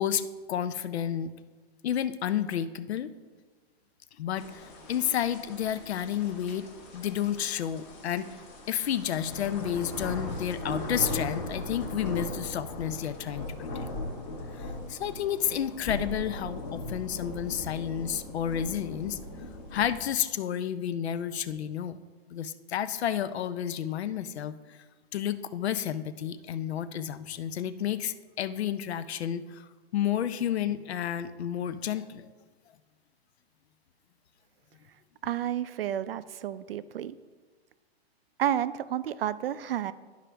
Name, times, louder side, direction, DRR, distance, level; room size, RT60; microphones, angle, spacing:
voice 1, 0.0-1.3 1.8-3.1 4.2-6.7 6.9-8.3 8.7-13.8 14.6-19.2 19.7-22.0 22.3-24.8 25.1-32.3, left 10 dB, 80° left, 13 dB, 0.6 m, -31 dB
sound 1, 4.4-20.1, left 1 dB, 15° left, 0.9 m, -38 dB
voice 2, 35.2-37.2 38.4-39.9, right 10 dB, 65° right, 15 dB, 0.5 m, -31 dB
11.5 x 4.9 x 3.4 m, 1.4 s
hypercardioid pair, 175°, 32 cm